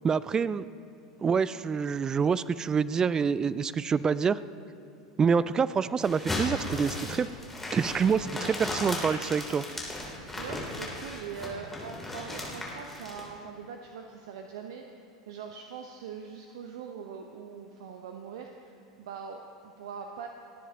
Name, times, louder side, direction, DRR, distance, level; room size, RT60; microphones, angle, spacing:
voice 1, 0.0-0.7 1.2-4.4 5.2-7.3 7.7-9.6, right 6 dB, 20° right, 17 dB, 0.4 m, -26 dB
sound 1, 6.0-13.3, left 1 dB, 5° left, 3.1 m, -36 dB
voice 2, 10.3-14.9 15.3-18.7 19.0-20.3, right 6 dB, 60° right, 4 dB, 0.8 m, -42 dB
29.5 x 10.0 x 2.9 m, 2.7 s
figure-of-eight pair, 80°, 3 cm